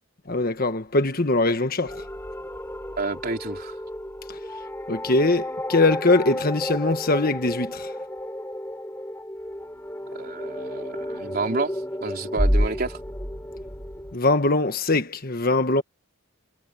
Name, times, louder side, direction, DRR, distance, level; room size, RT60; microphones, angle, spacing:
voice 1, 0.3-2.0 4.9-7.9 14.1-15.8, left 2 dB, 45° left, 1.4 m, -22 dB
sound 1, 1.9-14.2, equal, 10° left, 7.1 m, -31 dB
voice 2, 3.0-3.8 10.1-11.8 12.0-13.0, right 3 dB, 45° right, 4.1 m, -29 dB
head